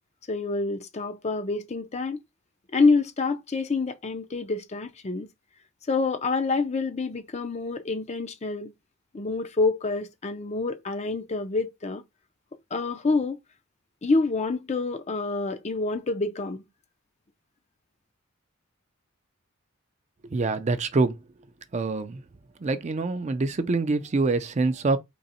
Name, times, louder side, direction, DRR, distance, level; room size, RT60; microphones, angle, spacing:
voice 1, 0.3-2.2 2.7-5.3 5.9-8.7 9.1-12.0 12.7-13.4 14.0-16.6, left 3 dB, 30° left, 0.5 m, -27 dB
voice 2, 20.3-21.1 21.7-22.2 22.6-25.0, right 3 dB, 30° right, 0.4 m, -25 dB
3.9 x 3.0 x 4.2 m
head